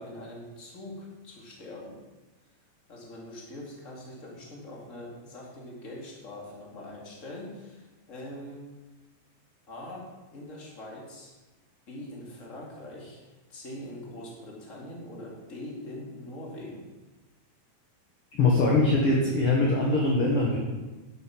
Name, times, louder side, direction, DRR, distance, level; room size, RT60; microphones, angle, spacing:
voice 1, 0.0-2.0 2.9-8.6 9.7-11.4 11.9-16.9, left 1 dB, 25° left, -3 dB, 2.2 m, -43 dB
voice 2, 18.3-20.6, left 2 dB, 50° left, -3 dB, 1.9 m, -22 dB
11.0 x 8.2 x 5.9 m, 1.1 s
omnidirectional pair, 4.3 m